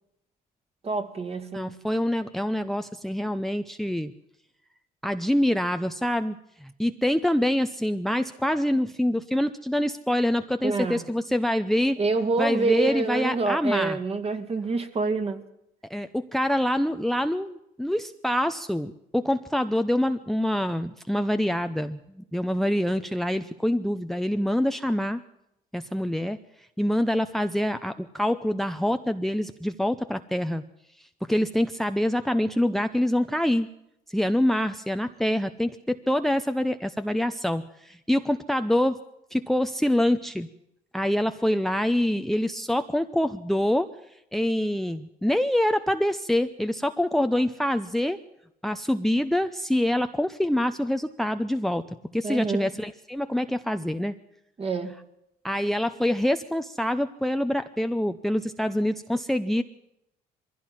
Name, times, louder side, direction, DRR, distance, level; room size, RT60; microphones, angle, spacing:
voice 1, 0.8-1.7 10.6-11.0 12.0-15.4 52.2-52.8 54.6-55.0, right 3 dB, 35° right, 2.4 m, -27 dB
voice 2, 1.5-4.1 5.0-6.4 6.6-12.0 12.4-14.0 15.9-25.2 25.7-26.4 26.8-30.6 31.3-33.7 34.1-39.0 39.3-40.5 40.9-43.9 44.3-48.2 48.6-51.8 52.1-54.1 55.4-59.6, left 1 dB, ahead, 0.7 m, -25 dB
22.0 x 16.0 x 7.4 m
cardioid pair, 110°, 17 cm